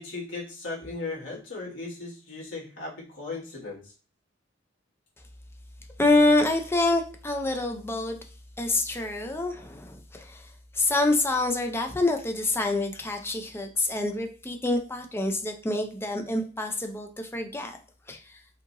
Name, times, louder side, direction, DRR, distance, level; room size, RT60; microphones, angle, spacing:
voice 1, 0.0-3.8, left 3 dB, 75° left, -5 dB, 2.0 m, -37 dB
voice 2, 6.0-8.2 8.6-10.5 10.7-17.8 18.1-18.2, left 2 dB, 15° left, 4 dB, 0.6 m, -26 dB
5.2 x 2.9 x 2.7 m, 0.39 s
head